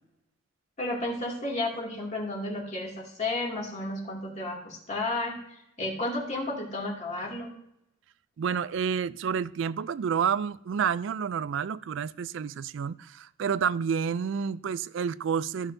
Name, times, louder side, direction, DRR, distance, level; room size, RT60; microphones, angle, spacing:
voice 1, 0.8-5.4 5.8-7.5, left 2 dB, 35° left, 2.3 m, -32 dB
voice 2, 8.4-15.7, right 7 dB, 60° right, 0.3 m, -29 dB
15.0 x 6.2 x 2.7 m
head